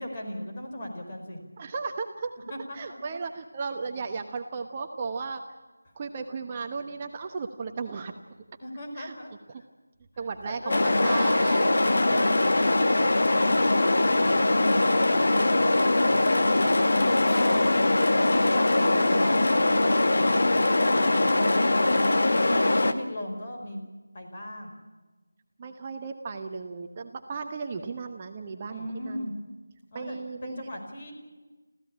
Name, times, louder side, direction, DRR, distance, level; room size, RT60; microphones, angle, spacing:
voice 1, 0.0-1.4 2.5-3.0 8.6-9.6 10.4-11.3 12.0-15.3 15.6-17.7 18.3-20.0 20.7-21.6 22.5-23.8 24.1-24.7 28.7-29.3 29.9-31.1, left 1 dB, 30° left, 2 dB, 4.9 m, -37 dB
voice 2, 1.6-2.3 2.7-5.4 5.9-8.1 8.9-9.1 9.5-9.6 10.2-11.7 25.6-29.3 29.9-30.7, right 4 dB, 25° right, 5 dB, 1.1 m, -35 dB
sound 1, 10.7-22.9, left 2 dB, 55° left, 1.9 m, -22 dB
25.0 x 15.5 x 8.7 m, 1.2 s
figure-of-eight pair, 165°, 0 cm